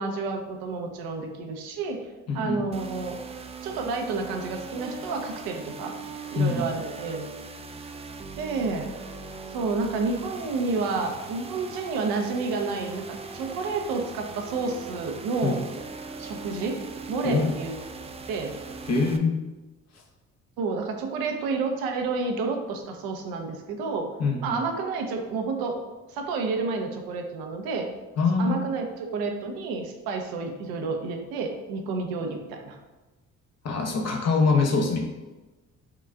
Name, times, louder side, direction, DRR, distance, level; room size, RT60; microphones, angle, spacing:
voice 1, 0.0-2.1 2.3-3.2 3.6-5.9 6.3-7.3 8.4-9.0 9.5-15.6 16.2-16.8 17.1-17.8 18.3-18.6 20.6-24.1 24.4-25.8 26.1-27.9 28.4-32.8, right 4 dB, 70° right, 3 dB, 0.6 m, -30 dB
voice 2, 2.3-2.6 6.4-6.7 15.4-15.6 17.2-17.5 18.9-19.4 24.2-24.6 28.2-28.6 33.6-35.0, left 4 dB, 45° left, 1 dB, 0.8 m, -24 dB
sound 1, 2.7-19.2, right 4 dB, 20° right, 0.3 m, -40 dB
5.8 x 2.3 x 2.3 m, 1.2 s
hypercardioid pair, 45°, 38 cm